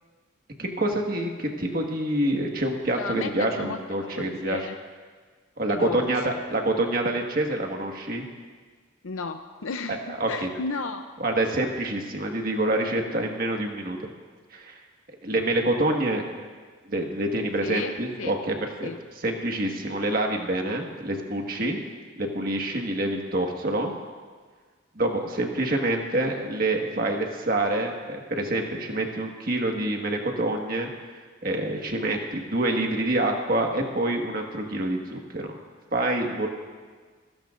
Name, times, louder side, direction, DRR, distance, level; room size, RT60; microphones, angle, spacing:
voice 1, 0.6-4.6 5.6-6.2 6.5-8.2 9.9-10.5 11.2-14.0 14.5-14.8 15.2-16.4 16.9-18.9 19.2-21.8 22.2-24.0 24.9-30.9 31.4-35.6 35.9-36.5, right 1 dB, 45° right, 2 dB, 1.6 m, -27 dB
voice 2, 2.9-4.8 5.7-6.3 9.0-11.0 17.6-17.9 18.2-18.3 18.8-19.0, left 4 dB, 90° left, 6 dB, 0.6 m, -33 dB
28.5 x 16.0 x 2.5 m, 1.5 s
head